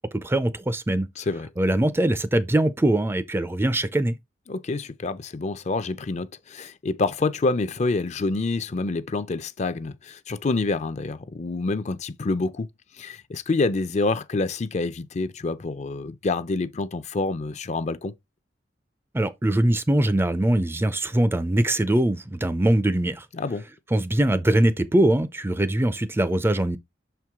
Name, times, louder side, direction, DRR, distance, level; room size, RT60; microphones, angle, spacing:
voice 1, 0.1-1.1 1.6-4.2 19.1-23.3 23.9-26.8, right 1 dB, 15° right, 0.4 m, -22 dB
voice 2, 1.2-1.5 4.5-12.7 13.0-18.1 23.3-23.7, left 3 dB, 40° left, 0.5 m, -27 dB
6.4 x 4.5 x 3.6 m
head